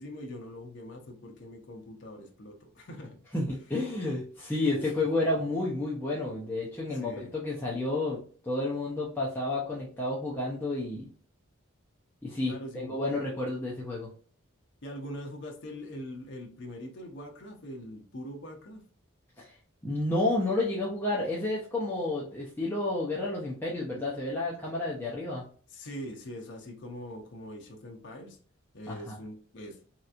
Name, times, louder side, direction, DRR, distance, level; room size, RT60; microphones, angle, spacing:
voice 1, 0.0-3.2 4.8-4.9 6.8-7.3 12.5-13.0 14.8-18.8 25.7-28.4 28.7-29.8, equal, 55° left, 2 dB, 0.6 m, -42 dB
voice 2, 3.3-11.1 12.2-14.1 19.4-19.5 19.8-25.4 28.9-29.2, left 2 dB, 10° left, -6 dB, 0.6 m, -31 dB
3.2 x 2.9 x 2.4 m, 0.44 s
head